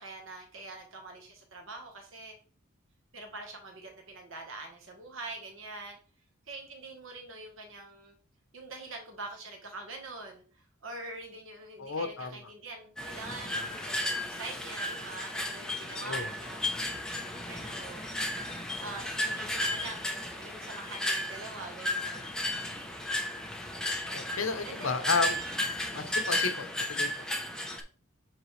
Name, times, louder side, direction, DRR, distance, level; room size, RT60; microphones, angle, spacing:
voice 1, 0.0-2.3 3.1-6.0 6.5-8.1 8.5-16.6 17.4-18.0 18.8-22.3 24.6-25.0 25.8-26.1, right 2 dB, 65° right, 2 dB, 1.4 m, -44 dB
voice 2, 11.8-12.4 13.5-13.7 15.9-16.3 24.1-25.4 25.9-27.1, left 4 dB, 65° left, 8 dB, 0.9 m, -32 dB
sound 1, 13.0-27.8, left 1 dB, 5° left, 0.8 m, -34 dB
7.7 x 4.1 x 3.3 m, 0.40 s
head